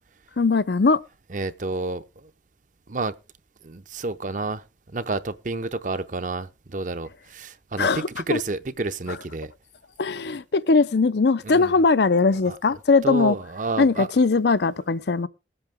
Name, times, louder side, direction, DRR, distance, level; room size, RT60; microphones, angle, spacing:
voice 1, 0.4-1.0 7.8-8.4 10.0-13.3 13.8-15.3, left 4 dB, 70° left, 0.5 m, -20 dB
voice 2, 1.3-2.3 2.9-3.1 3.6-4.6 4.9-9.5 11.4-11.7 12.4-12.6 13.0-14.1, right 3 dB, 45° right, 0.7 m, -30 dB
20.0 x 7.9 x 3.6 m
head